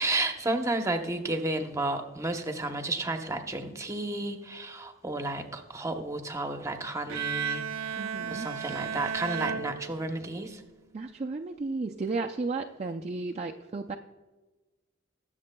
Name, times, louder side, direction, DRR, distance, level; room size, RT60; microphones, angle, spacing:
voice 1, 0.0-10.6, right 2 dB, 15° right, 5 dB, 0.9 m, -32 dB
Bowed string instrument, 7.1-10.4, right 7 dB, 80° right, 0.6 m, -34 dB
voice 2, 7.9-8.5 10.9-14.0, right 3 dB, 30° right, 2 dB, 0.4 m, -33 dB
21.5 x 7.4 x 2.3 m, 1.2 s
head